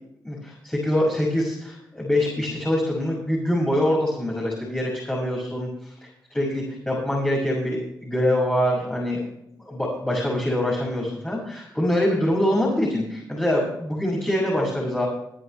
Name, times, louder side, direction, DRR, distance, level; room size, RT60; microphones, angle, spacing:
voice 1, 0.2-9.2 9.6-15.1, left 1 dB, 15° left, -4 dB, 6.3 m, -24 dB
21.0 x 10.0 x 3.4 m, 0.77 s
cardioid pair, 65°, 7 cm